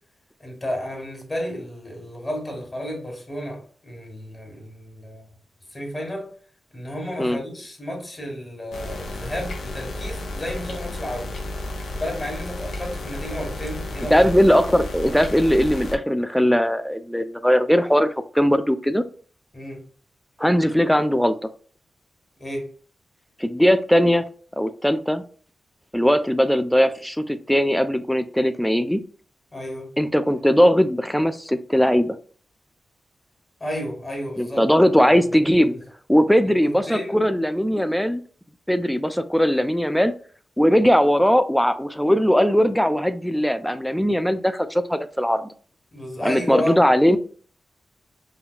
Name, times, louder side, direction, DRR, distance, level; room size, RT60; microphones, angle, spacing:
voice 1, 0.4-5.2 5.7-6.3 6.7-11.4 11.9-14.3 19.5-19.8 22.4-22.7 29.5-29.9 33.6-34.7 35.4-35.8 36.6-37.2 45.9-46.8, equal, 30° left, 1.5 m, -32 dB
sound 1, 8.7-15.9, left 1 dB, 80° left, 0.6 m, -32 dB
voice 2, 14.1-19.0 20.4-21.3 23.4-24.3 24.6-25.2 25.9-29.0 30.0-32.2 34.4-35.7 36.1-38.2 38.7-40.1 40.6-45.4 46.2-47.2, equal, 5° left, 0.3 m, -19 dB
5.1 x 2.4 x 2.2 m
cardioid pair, 75°, 0 cm